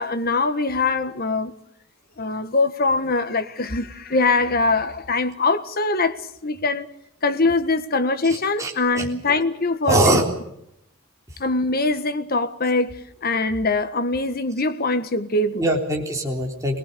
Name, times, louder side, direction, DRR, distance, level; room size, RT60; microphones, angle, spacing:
voice 1, 0.0-1.5 2.2-6.9 7.2-10.2 11.4-15.7, left 3 dB, 45° left, 1.6 m, -23 dB
voice 2, 8.6-9.1 9.9-10.2 15.6-16.8, right 1 dB, 15° right, 3.5 m, -21 dB
25.0 x 19.0 x 6.9 m
head